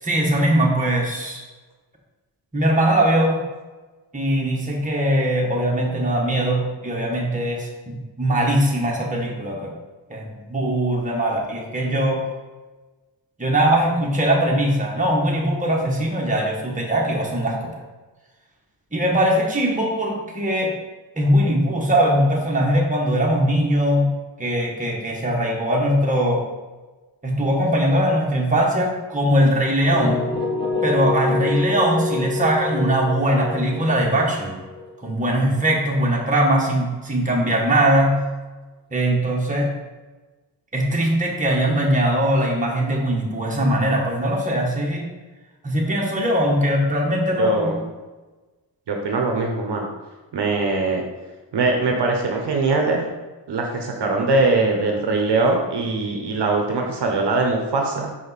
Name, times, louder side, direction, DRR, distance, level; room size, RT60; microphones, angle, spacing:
voice 1, 0.0-1.4 2.5-3.4 4.1-9.7 10.1-12.2 13.4-17.7 18.9-20.7 21.2-24.1 24.4-26.4 27.2-30.3 30.8-34.6 35.0-38.2 38.9-39.7 40.7-45.1 45.6-47.8, right 1 dB, 15° right, -2 dB, 1.3 m, -21 dB
sound 1, 29.9-35.8, left 3 dB, 10° left, 1.1 m, -27 dB
voice 2, 47.4-47.8 48.9-49.9 50.3-51.0 51.5-53.1 53.5-58.1, right 3 dB, 65° right, 1 dB, 1.0 m, -21 dB
5.4 x 5.2 x 4.1 m, 1.2 s
wide cardioid pair, 120°, 45 cm